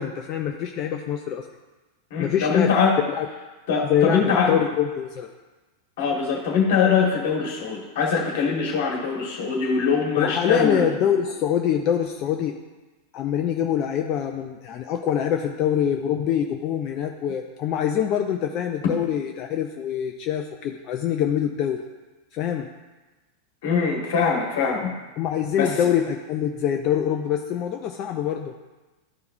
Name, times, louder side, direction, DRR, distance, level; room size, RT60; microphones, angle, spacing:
voice 1, 0.0-1.5 2.2-2.7 3.1-3.3 3.9-5.3 10.2-12.6 13.1-21.8 22.3-22.7 25.2-28.5, left 9 dB, 35° left, 4 dB, 0.4 m, -24 dB
voice 2, 2.1-2.9 3.7-4.6 6.0-10.9 23.6-24.9 25.6-25.7, left 5 dB, 55° left, -1 dB, 1.6 m, -22 dB
12.0 x 4.7 x 2.6 m, 1.2 s
figure-of-eight pair, 90°, 0 cm